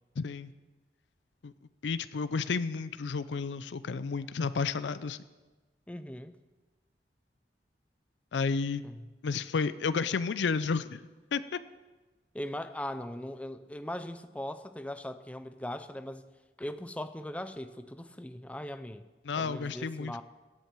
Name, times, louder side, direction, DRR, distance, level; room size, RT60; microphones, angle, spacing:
voice 1, 0.2-0.5 1.4-1.5 1.8-5.2 8.3-8.8 9.2-11.0 11.3-11.6 19.2-20.2, left 5 dB, 90° left, 15 dB, 0.5 m, -31 dB
voice 2, 5.9-6.3 8.8-9.1 12.3-16.3 16.6-19.1 19.4-20.2, left 1 dB, 10° left, 10 dB, 0.5 m, -39 dB
16.5 x 10.5 x 4.5 m, 1.2 s
head